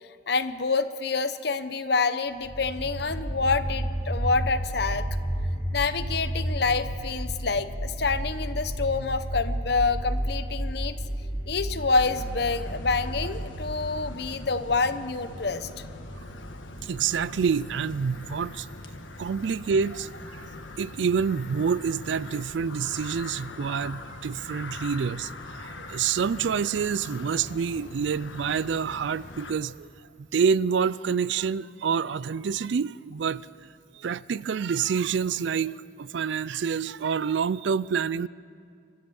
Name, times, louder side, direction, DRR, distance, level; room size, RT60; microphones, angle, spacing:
voice 1, 0.3-5.1 5.7-11.0 11.5-15.7, left 4 dB, 55° left, 0.8 m, -27 dB
sound 1, 2.4-19.4, right 1 dB, 30° right, 2.2 m, -33 dB
sound 2, 12.0-29.5, left 2 dB, 85° left, 1.5 m, -42 dB
voice 2, 16.8-18.7 19.2-20.4 20.8-29.9 30.2-33.5 34.0-38.3, right 6 dB, 70° right, 0.4 m, -27 dB
28.0 x 13.5 x 7.0 m
head